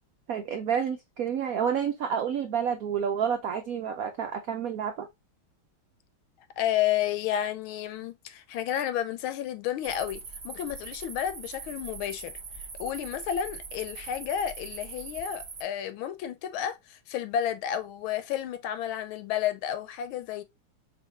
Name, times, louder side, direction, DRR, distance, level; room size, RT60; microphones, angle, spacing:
voice 1, 0.3-5.1, right 8 dB, 85° right, 0.7 m, -29 dB
voice 2, 6.6-12.3 12.8-20.4, left 10 dB, 80° left, 1.5 m, -31 dB
sound 1, 9.8-15.6, right 5 dB, 40° right, 1.0 m, -42 dB
4.8 x 3.5 x 2.8 m
omnidirectional pair, 2.3 m